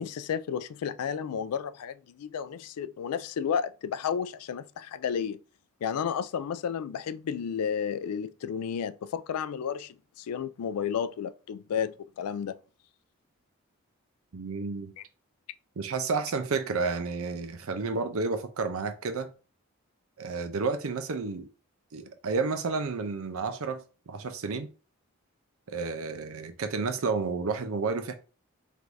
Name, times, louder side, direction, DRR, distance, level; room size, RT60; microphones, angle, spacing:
voice 1, 0.0-5.4 5.8-12.6 15.0-15.1, left 7 dB, 90° left, 0.3 m, -32 dB
voice 2, 14.3-14.9 15.8-19.3 20.2-21.5 21.9-24.7 25.7-28.1, right 4 dB, 70° right, 0.5 m, -31 dB
3.4 x 2.6 x 4.6 m
head